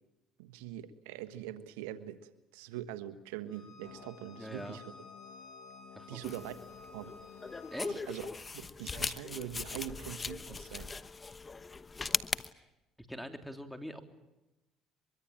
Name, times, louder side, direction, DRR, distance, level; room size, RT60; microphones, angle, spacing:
voice 1, 0.4-4.9 6.1-6.5 6.9-7.1 7.9-8.3 8.5-10.9, right 12 dB, 90° right, 11 dB, 1.4 m, -43 dB
Bowed string instrument, 3.5-7.9, left 2 dB, 55° left, 7.4 m, -54 dB
sound 1, 3.8-8.8, left 13 dB, 80° left, 1.7 m, -56 dB
voice 2, 4.3-4.8 5.9-6.3 7.7-8.0 13.0-14.0, equal, ahead, 6 dB, 3.5 m, -43 dB
sound 2, 6.2-12.5, left 4 dB, 25° left, 1.1 m, -39 dB
24.0 x 23.5 x 8.8 m, 0.97 s
supercardioid pair, 80°, 0 cm